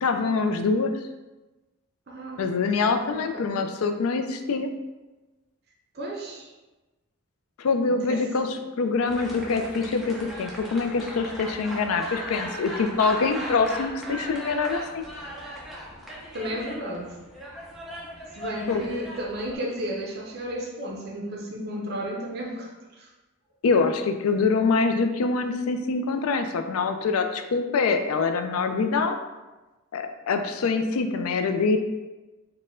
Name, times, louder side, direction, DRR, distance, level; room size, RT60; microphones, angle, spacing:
voice 1, 0.0-0.9 2.4-4.7 7.6-15.0 18.7-18.8 23.6-29.2 29.9-31.8, left 4 dB, 85° left, 7 dB, 0.4 m, -25 dB
voice 2, 2.1-2.4 3.1-3.7 5.9-6.5 8.0-8.3 16.3-17.1 18.4-23.1, equal, 50° right, 0 dB, 0.6 m, -33 dB
sound 1, 9.1-19.5, equal, ahead, 0.5 m, -38 dB
4.2 x 2.2 x 3.6 m, 1.1 s
head